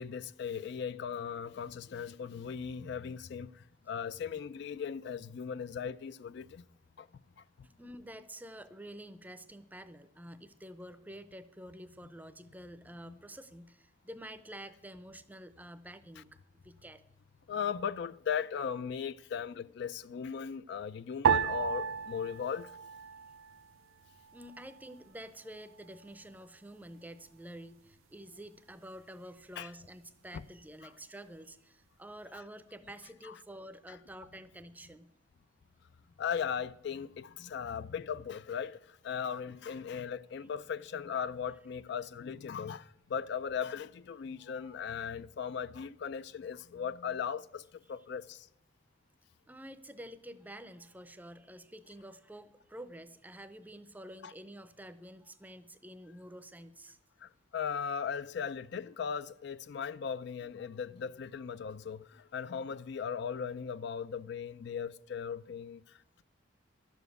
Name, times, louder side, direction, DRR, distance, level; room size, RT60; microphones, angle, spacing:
voice 1, 0.0-6.6 7.0-7.1 7.4-7.5 17.5-22.7 29.6-29.7 33.2-33.3 33.9-34.0 36.2-48.5 54.2-54.3 57.2-66.2, left 7 dB, 60° left, 0.3 m, -38 dB
voice 2, 7.8-16.3 16.6-17.0 24.3-35.1 39.7-39.8 44.4-44.8 49.5-57.0, right 1 dB, 10° right, 0.6 m, -49 dB
sound 1, 21.2-23.8 24.0-24.9 25.6-26.0, right 7 dB, 90° right, 0.4 m, -33 dB
12.0 x 7.2 x 8.1 m
head